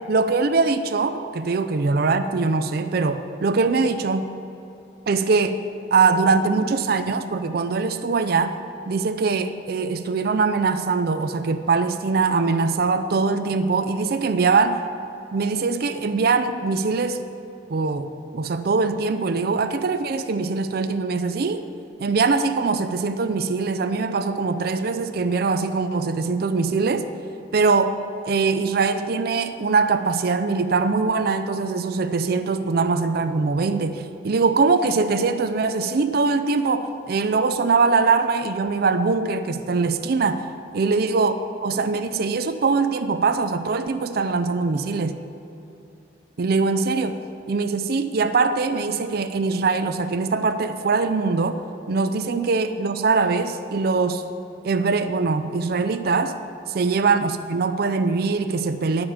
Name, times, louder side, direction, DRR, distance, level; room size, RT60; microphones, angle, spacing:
voice 1, 0.1-4.3 5.1-5.6 5.9-8.6 8.9-14.8 15.3-17.2 17.7-21.6 22.0-27.1 27.5-28.0 28.3-40.4 40.7-41.3 41.6-45.2 46.4-47.2 47.5-54.2 54.6-56.3 56.7-59.0, right 4 dB, 55° right, 9 dB, 0.5 m, -22 dB
10.5 x 5.1 x 7.2 m, 2.8 s
head